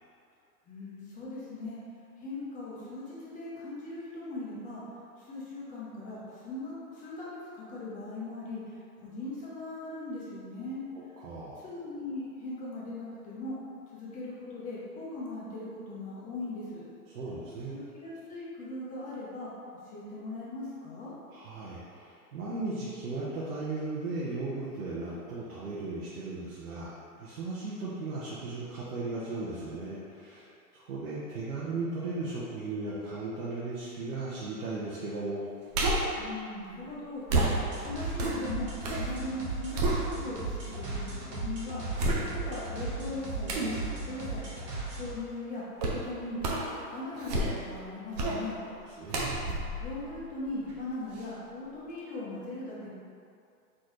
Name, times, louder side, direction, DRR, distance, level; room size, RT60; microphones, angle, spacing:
voice 1, 0.7-1.8 2.2-4.8 5.2-8.6 9.0-10.8 11.6-13.6 13.9-16.8 17.7-19.5 19.8-21.1 36.2-41.8 42.3-44.4 44.9-46.5 46.9-48.6 49.8-52.9, left 2 dB, 15° left, -7 dB, 0.8 m, -39 dB
voice 2, 10.9-11.6 17.1-17.8 21.3-30.5 30.7-35.5 48.9-49.4, right 3 dB, 65° right, -8 dB, 1.1 m, -36 dB
sound 1, 35.7-36.2 37.3-39.1 39.4-40.5 41.0-41.1 42.0-42.6 43.5-43.8 45.8-46.1 46.4-46.7 47.1-47.8 48.1-48.4 49.1-50.8 51.2-51.3, right 2 dB, 30° right, 0.5 m, -30 dB
sound 2, 37.5-45.1, right 2 dB, 85° right, 1.4 m, -36 dB
4.3 x 3.7 x 3.2 m, 2.5 s
hypercardioid pair, 135°, 47 cm